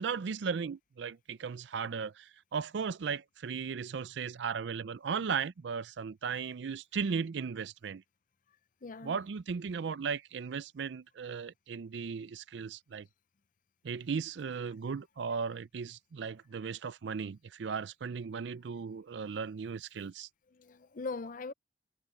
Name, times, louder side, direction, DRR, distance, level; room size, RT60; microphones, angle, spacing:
voice 1, 0.0-8.0 9.0-13.1 13.8-20.3, right 6 dB, 65° right, 0.4 m, -36 dB
voice 2, 8.8-9.2 20.5-21.5, left 3 dB, 45° left, 0.6 m, -40 dB
head